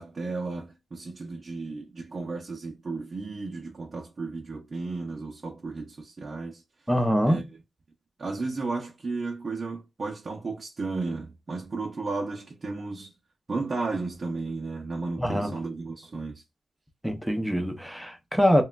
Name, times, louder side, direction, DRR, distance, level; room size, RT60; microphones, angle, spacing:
voice 1, 0.0-6.6 7.2-7.4 8.2-13.2 13.5-16.4, right 3 dB, 45° right, 0.6 m, -34 dB
voice 2, 6.9-7.4 15.2-15.5 17.0-18.6, equal, ahead, 0.6 m, -24 dB
3.0 x 2.2 x 2.2 m
wide cardioid pair, 100°, 0 cm